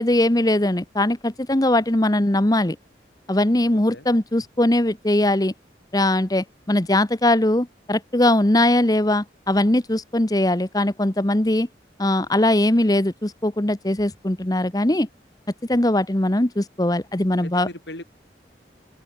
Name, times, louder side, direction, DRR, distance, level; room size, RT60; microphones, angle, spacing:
voice 1, 0.0-2.8 3.3-5.5 5.9-11.7 12.0-15.1 15.7-17.7, left 1 dB, 20° left, 1.1 m, -20 dB
voice 2, 3.7-4.0 17.4-18.0, left 1 dB, 80° left, 6.5 m, -38 dB
open air
head